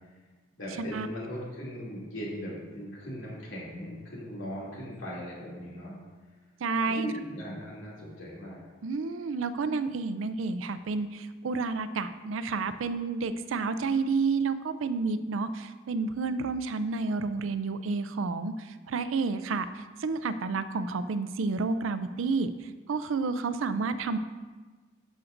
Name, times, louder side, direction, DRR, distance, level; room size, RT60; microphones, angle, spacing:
voice 1, 0.6-5.9 6.8-8.6, equal, 85° left, -6 dB, 2.6 m, -39 dB
voice 2, 6.6-7.1 8.8-24.2, right 4 dB, 90° right, 11 dB, 0.4 m, -30 dB
11.5 x 6.3 x 2.6 m, 1.3 s
head